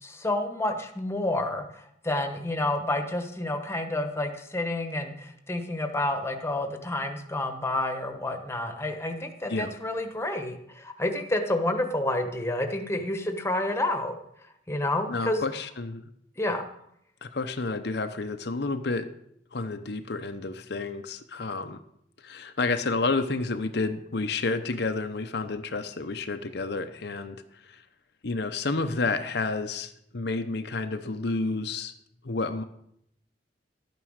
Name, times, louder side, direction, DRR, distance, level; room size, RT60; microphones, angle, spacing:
voice 1, 0.0-14.2 14.7-15.4 16.4-16.6, left 1 dB, 15° left, 6 dB, 1.3 m, -29 dB
voice 2, 15.1-16.1 17.2-19.1 19.5-21.8 22.2-27.8 28.2-31.9 32.2-32.6, left 3 dB, 65° left, 8 dB, 0.8 m, -30 dB
12.0 x 9.2 x 6.5 m, 0.73 s
head